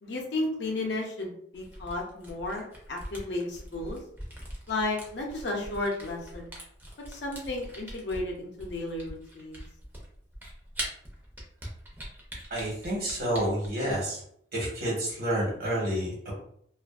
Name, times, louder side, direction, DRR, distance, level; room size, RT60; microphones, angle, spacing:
voice 1, 0.0-4.0 4.7-6.5 7.1-9.6, left 2 dB, 65° left, 0 dB, 0.6 m, -33 dB
Camera, 1.5-14.0, equal, 10° right, 0.6 m, -43 dB
voice 2, 12.5-14.2 14.5-16.3, right 1 dB, 55° right, -3 dB, 1.1 m, -29 dB
2.5 x 2.4 x 2.4 m, 0.67 s
head